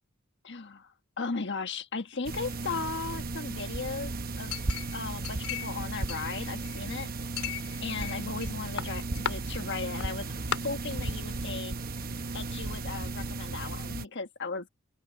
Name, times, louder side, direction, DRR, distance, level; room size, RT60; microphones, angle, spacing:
voice 1, 0.4-4.5 4.9-7.1 7.8-11.7 12.3-14.7, left 4 dB, 55° left, 1.4 m, -36 dB
sound 1, 2.2-14.0, right 3 dB, 40° right, 1.0 m, -35 dB
Chink clink, 4.5-5.8 6.1-6.9 7.4-8.5 8.8-9.3 10.0-10.1 10.5-10.6, left 8 dB, 90° left, 3.3 m, -35 dB
open air
head